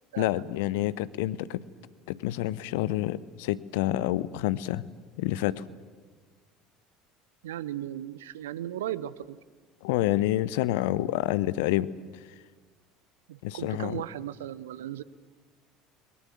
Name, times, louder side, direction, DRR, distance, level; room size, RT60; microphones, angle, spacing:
voice 1, 0.2-1.6 2.1-4.9 5.2-5.7 9.8-11.9 13.4-14.0, left 15 dB, 60° left, 18 dB, 0.8 m, -28 dB
voice 2, 7.4-9.4 13.3-15.0, right 12 dB, 70° right, 17 dB, 0.8 m, -36 dB
30.0 x 21.5 x 7.5 m, 1.5 s
figure-of-eight pair, 65°, 0 cm